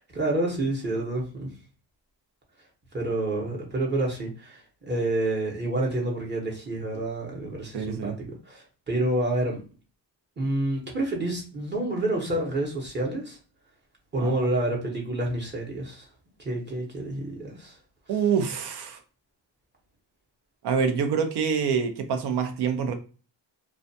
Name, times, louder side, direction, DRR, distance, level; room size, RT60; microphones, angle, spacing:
voice 1, 0.0-1.5 2.9-9.6 10.4-13.4 14.1-16.1 16.4-17.8, right 1 dB, 25° right, 0.9 m, -28 dB
voice 2, 7.7-8.2 14.2-14.3 18.1-19.0 20.6-22.9, right 6 dB, 65° right, 0.7 m, -26 dB
2.4 x 2.2 x 2.7 m
cardioid pair, 100°, 43 cm